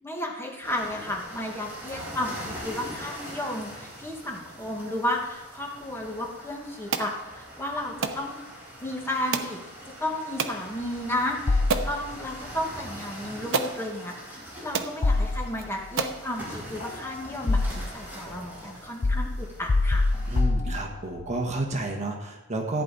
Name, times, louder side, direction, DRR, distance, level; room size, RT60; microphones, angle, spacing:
voice 1, 0.0-8.4 8.8-9.6 10.0-20.1, left 1 dB, 10° left, 0 dB, 1.6 m, -33 dB
sound 1, 0.6-20.4, equal, 10° right, 4.6 m, -42 dB
sound 2, 6.9-7.1 8.0-8.2 9.3-9.6 10.4-10.6 11.2-11.3 11.7-11.9 13.0-13.1 13.5-13.8 14.4-14.5 14.7-14.9 15.5-15.6 16.0-16.2, right 5 dB, 60° right, 0.9 m, -28 dB
sound 3, 11.5-12.4 15.0-15.9 16.8-18.1 19.0-21.3, left 2 dB, 30° left, 0.4 m, -25 dB
voice 2, 20.3-22.8, right 2 dB, 35° right, 2 dB, 1.3 m, -30 dB
14.5 x 9.4 x 4.1 m, 1.1 s
head